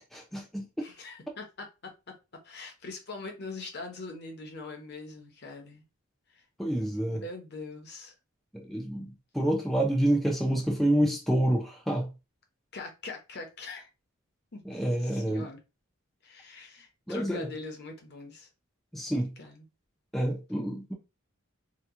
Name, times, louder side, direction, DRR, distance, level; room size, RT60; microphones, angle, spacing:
voice 1, 0.1-0.6 6.6-7.2 8.5-12.1 14.7-15.5 17.1-17.5 18.9-19.3 20.1-20.9, right 1 dB, ahead, 0.5 m, -28 dB
voice 2, 0.8-2.2 2.4-5.8 6.3-6.4 7.1-8.1 12.7-13.9 14.5-14.6 15.0-15.6 16.2-18.5 19.4-19.7, left 3 dB, 50° left, 0.8 m, -42 dB
2.9 x 2.3 x 3.5 m
head